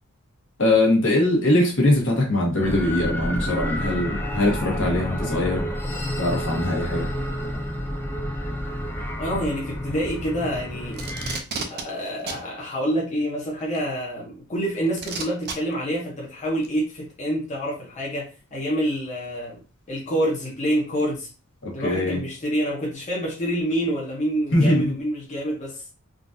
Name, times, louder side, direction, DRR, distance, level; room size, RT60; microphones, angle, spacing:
voice 1, 0.6-5.7 6.2-7.1 21.6-22.2 24.5-25.0, left 1 dB, 65° left, -1 dB, 1.2 m, -22 dB
sound 1, 2.6-11.4, equal, 10° left, 0.4 m, -29 dB
voice 2, 9.2-11.0 11.7-19.6 19.9-21.3 21.7-25.8, equal, 35° left, -4 dB, 0.8 m, -27 dB
Packing tape duct tape, 10.9-11.8 12.3-12.4 13.7-13.8 15.0-15.5 16.6-16.7, right 4 dB, 50° right, 0.5 m, -31 dB
3.8 x 2.5 x 2.6 m, 0.35 s
head